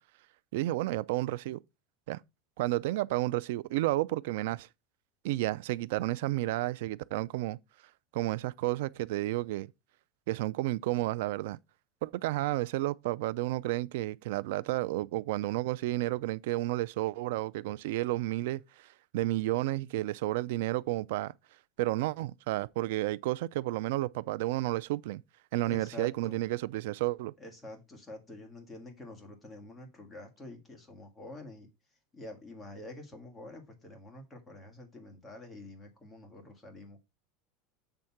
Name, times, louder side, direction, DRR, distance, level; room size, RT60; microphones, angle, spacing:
voice 1, 0.5-1.6 2.1-2.2 2.6-4.7 5.2-7.6 8.1-9.7 10.3-11.6 12.0-21.3 21.8-25.2 25.5-27.3, right 17 dB, 70° right, 0.4 m, -31 dB
voice 2, 25.6-26.4 27.4-31.7 32.1-37.0, left 1 dB, 10° left, 1.8 m, -47 dB
7.8 x 3.6 x 5.8 m
supercardioid pair, 165°, 0 cm